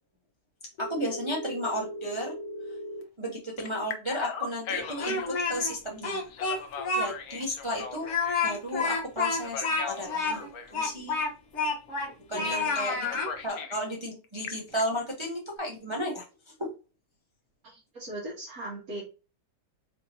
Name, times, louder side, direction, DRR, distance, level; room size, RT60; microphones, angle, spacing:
Telephone, 0.8-3.0 3.6-5.3 6.3-8.6 9.4-10.7 12.5-12.7 13.0-13.8 14.2-14.8, left 4 dB, 70° left, 1.2 m, -38 dB
voice 1, 0.8-2.3 3.2-6.2 6.9-8.1 8.4-11.2 12.3-16.2, equal, 25° right, -2 dB, 0.6 m, -33 dB
Speech, 4.8-5.7 6.0-7.1 7.4-7.5 8.0-12.1 12.4-13.3, left 4 dB, 50° left, 1.1 m, -29 dB
voice 2, 12.3-12.8 17.6-19.0, right 1 dB, 65° right, -6 dB, 1.9 m, -39 dB
4.4 x 2.9 x 2.7 m, 0.31 s
omnidirectional pair, 1.7 m